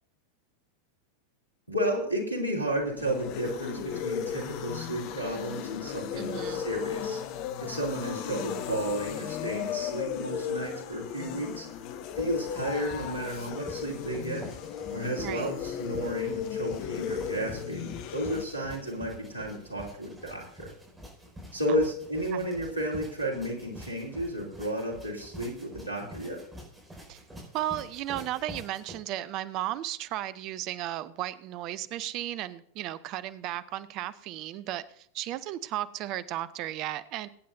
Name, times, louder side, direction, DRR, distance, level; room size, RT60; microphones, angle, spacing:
voice 1, 1.7-7.2 7.6-11.7 12.2-14.5 14.9-20.7 21.5-26.4, equal, 85° left, 0 dB, 2.9 m, -32 dB
sound 1, 2.8-18.4, left 8 dB, 45° left, 0.8 m, -35 dB
voice 2, 6.2-6.6 15.2-15.5 21.7-21.8 22.3-22.5 27.1-27.2 27.5-37.3, right 13 dB, 40° right, 16 dB, 0.6 m, -35 dB
sound 2, 11.7-29.0, equal, 10° right, 5.1 m, -47 dB
22.0 x 9.4 x 2.6 m, 0.66 s
figure-of-eight pair, 90°, 0 cm